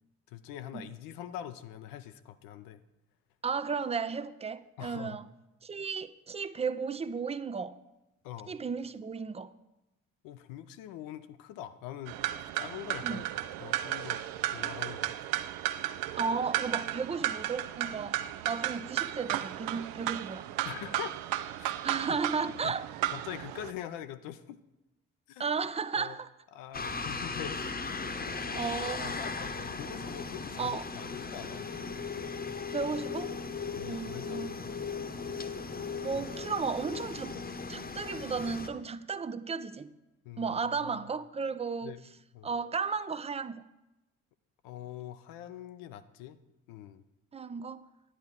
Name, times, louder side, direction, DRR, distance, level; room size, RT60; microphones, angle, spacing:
voice 1, 0.3-2.8 4.8-5.2 8.2-8.5 10.2-13.2 13.6-14.2 14.5-15.3 20.6-21.2 21.5-21.7 22.6-22.7 23.1-24.6 25.3-25.5 26.0-26.2 26.5-27.6 28.3-28.4 29.0-31.6 33.7-34.6 35.4-35.5 40.2-40.6 40.9-41.0 41.8-42.0 42.3-42.5 44.6-46.4 46.7-47.0, left 11 dB, 60° left, 0.6 m, -43 dB
voice 2, 3.4-5.3 5.6-7.8 8.5-9.5 13.0-13.2 16.2-18.2 18.5-20.5 21.8-22.9 25.4-26.3 27.0-27.1 28.5-29.2 30.6-30.8 32.7-33.4 33.8-34.6 36.0-39.9 40.4-42.0 42.4-43.6 47.3-47.9, right 5 dB, 15° right, 0.5 m, -34 dB
sound 1, 12.1-23.7, right 13 dB, 60° right, 0.6 m, -34 dB
sound 2, 26.7-38.7, left 4 dB, 25° left, 1.0 m, -37 dB
11.0 x 10.5 x 3.7 m
figure-of-eight pair, 40°, 38 cm